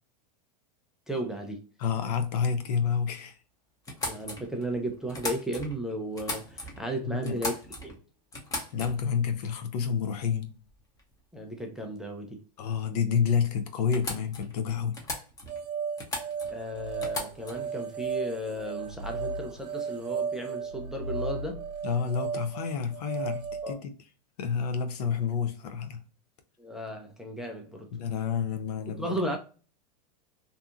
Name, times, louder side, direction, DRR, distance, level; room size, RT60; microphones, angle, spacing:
voice 1, 1.1-1.7 4.0-7.5 7.8-8.0 11.3-12.4 16.5-21.7 23.6-23.8 26.6-27.9 28.9-29.4, right 1 dB, 5° right, 0.3 m, -35 dB
voice 2, 1.8-3.4 7.0-7.4 8.7-10.5 12.6-15.0 21.8-24.0 24.4-26.0 27.9-29.1, left 6 dB, 70° left, 0.6 m, -29 dB
sound 1, 3.8-5.8 6.1-6.8 7.2-8.0 8.3-9.1 10.1-10.3 10.7-11.1 13.0-13.1 13.4-13.5 13.9-14.5 14.9-15.6 16.0-16.6 17.0-17.7, left 2 dB, 15° left, 0.7 m, -37 dB
sound 2, 15.5-23.7, right 5 dB, 75° right, 0.6 m, -35 dB
2.7 x 2.3 x 2.4 m
hypercardioid pair, 120°, 21 cm